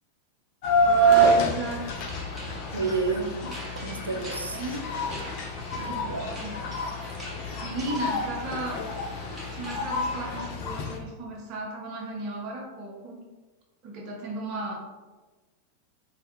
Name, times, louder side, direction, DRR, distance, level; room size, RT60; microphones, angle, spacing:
sound 1, 0.6-11.0, right 2 dB, 45° left, 0.4 m, -27 dB
voice 1, 0.8-1.9 4.2-4.8 5.7-6.6 7.6-8.9 9.2-13.2 13.8-14.8, right 2 dB, 40° right, -2 dB, 0.8 m, -35 dB
sound 2, 1.5-10.5, equal, 15° right, 1.0 m, -42 dB
voice 2, 2.7-4.6 5.9-6.3, right 4 dB, 80° right, 3 dB, 0.4 m, -31 dB
3.3 x 2.4 x 2.8 m, 1.3 s
figure-of-eight pair, 90°, 0 cm